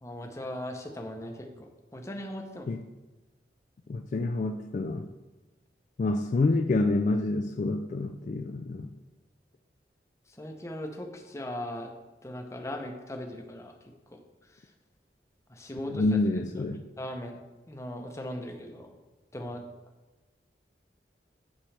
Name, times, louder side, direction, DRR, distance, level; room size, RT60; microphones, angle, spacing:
voice 1, 0.0-2.7 10.4-11.9 12.2-13.7 14.1-14.2 15.5-16.0 17.0-17.4 17.7-18.9 19.3-19.6, left 1 dB, 15° left, 4 dB, 0.7 m, -38 dB
voice 2, 3.9-5.1 6.0-8.9 15.9-16.8, left 2 dB, 45° left, 6 dB, 0.3 m, -28 dB
8.7 x 6.1 x 3.3 m, 1.1 s
head